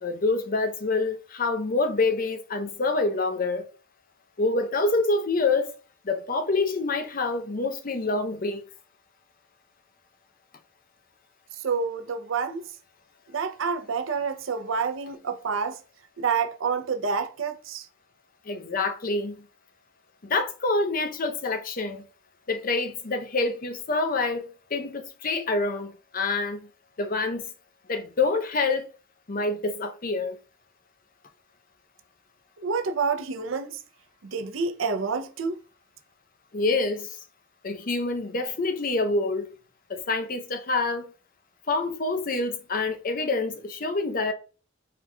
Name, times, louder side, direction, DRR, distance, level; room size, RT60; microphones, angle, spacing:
voice 1, 0.0-3.6 4.4-5.7 6.0-8.6 18.5-19.5 20.2-22.0 22.5-26.7 27.0-27.5 27.9-28.9 29.3-30.4 36.5-37.2 37.6-39.5 39.9-41.0 41.7-44.3, left 3 dB, 45° left, 0.6 m, -26 dB
voice 2, 11.6-12.6 13.3-15.8 16.2-17.8 32.6-33.8 34.2-35.6, right 5 dB, 85° right, 0.6 m, -28 dB
4.6 x 3.9 x 2.3 m
head